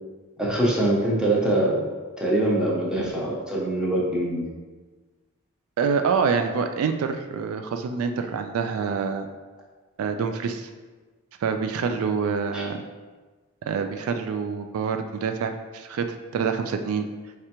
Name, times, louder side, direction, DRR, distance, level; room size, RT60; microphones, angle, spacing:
voice 1, 0.4-1.8 2.2-4.5 12.5-12.6, right 1 dB, 5° right, -5 dB, 0.8 m, -23 dB
voice 2, 5.8-9.3 10.0-10.7 11.4-12.8 13.6-17.1, right 5 dB, 80° right, 7 dB, 0.3 m, -26 dB
4.8 x 3.3 x 2.9 m, 1.3 s
head